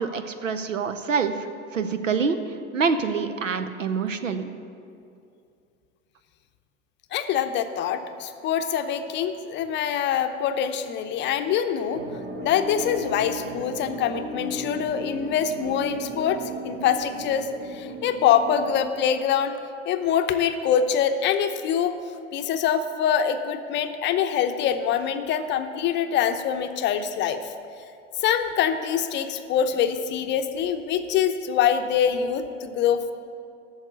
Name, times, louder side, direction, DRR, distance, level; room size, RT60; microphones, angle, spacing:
voice 1, 0.0-1.5 1.7-2.4 2.7-4.5, right 5 dB, 90° right, 10 dB, 0.7 m, -26 dB
voice 2, 7.1-12.0 12.4-19.6 19.9-21.9 22.3-27.5 28.2-33.1, left 8 dB, 30° left, 8 dB, 0.7 m, -24 dB
sound 1, 11.9-18.9, right 1 dB, 35° right, 1.2 m, -35 dB
8.8 x 6.5 x 8.2 m, 2.5 s
figure-of-eight pair, 90°, 37 cm